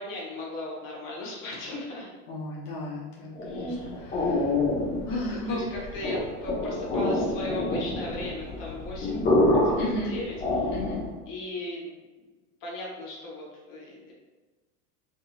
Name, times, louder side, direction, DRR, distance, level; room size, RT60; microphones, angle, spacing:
voice 1, 0.0-2.1 3.4-4.0 5.1-10.7 11.3-11.9 12.6-14.1, left 2 dB, 45° left, -4 dB, 1.3 m, -37 dB
voice 2, 2.3-4.5 5.1-5.6 9.8-10.1 10.7-11.0, left 1 dB, 80° left, -5 dB, 1.0 m, -34 dB
sound 1, 3.3-11.2, left 2 dB, 25° left, 1.0 m, -27 dB
3.8 x 2.7 x 2.3 m, 1.3 s
hypercardioid pair, 105°, 45 cm